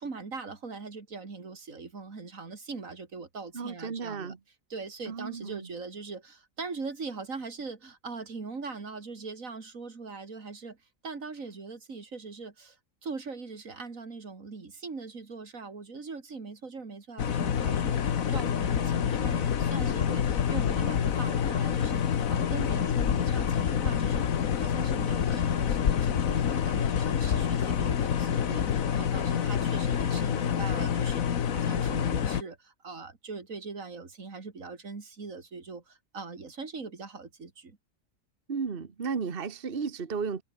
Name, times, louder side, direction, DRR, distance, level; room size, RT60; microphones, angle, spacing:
voice 1, 0.0-4.3 4.7-10.8 11.0-12.8 13.0-24.3 24.6-31.3 31.5-37.8, right 4 dB, 80° right, 3.0 m, -41 dB
voice 2, 3.5-4.4 5.1-5.7 38.5-40.4, right 5 dB, 45° right, 1.5 m, -34 dB
sound 1, 17.2-32.4, left 8 dB, 90° left, 1.6 m, -27 dB
omnidirectional pair, 1.4 m